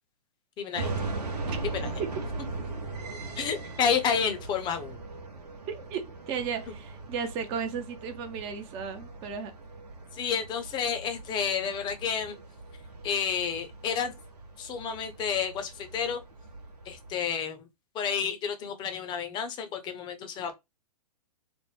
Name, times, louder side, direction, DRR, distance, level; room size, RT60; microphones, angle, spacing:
voice 1, 0.6-0.9 1.7-1.9 3.4-5.0 10.1-12.4 13.0-14.1 14.6-16.2 16.9-17.6 17.9-20.5, left 7 dB, 20° left, 0.6 m, -30 dB
sound 1, 0.7-17.1, right 3 dB, 85° right, 0.9 m, -39 dB
voice 2, 5.7-9.5, right 6 dB, 30° right, 0.5 m, -34 dB
3.2 x 2.1 x 3.1 m
hypercardioid pair, 120°, 20 cm